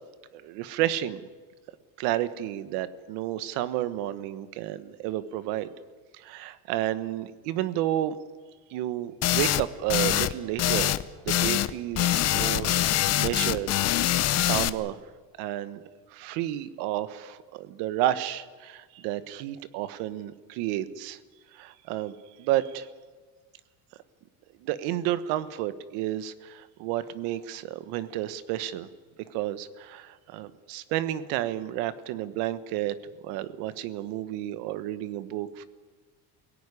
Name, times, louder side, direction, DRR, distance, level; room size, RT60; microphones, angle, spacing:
voice 1, 0.3-1.2 2.0-5.7 6.1-8.2 8.7-11.0 11.2-12.7 13.1-13.7 14.0-15.0 15.4-15.8 16.1-21.2 21.5-22.1 22.4-22.9 24.6-28.9 29.3-32.9 33.2-35.7, right 13 dB, 85° right, 14 dB, 1.4 m, -31 dB
sound 1, 9.2-9.6 9.9-10.3 10.6-11.0 11.3-11.7 12.0-14.7, left 13 dB, 40° left, 0.8 m, -24 dB
22.5 x 17.5 x 9.9 m, 1.4 s
cardioid pair, 140°, 40 cm